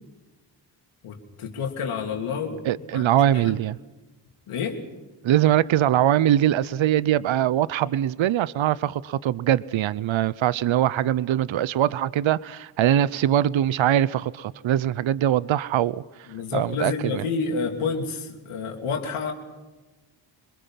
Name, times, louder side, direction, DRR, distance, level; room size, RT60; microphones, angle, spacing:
voice 1, 1.0-2.6 2.9-3.5 4.5-4.8 16.3-19.3, left 5 dB, 90° left, 3.2 m, -29 dB
voice 2, 2.6-3.8 5.2-17.2, right 11 dB, 70° right, 0.8 m, -22 dB
26.5 x 22.0 x 5.8 m
supercardioid pair, 50°, 49 cm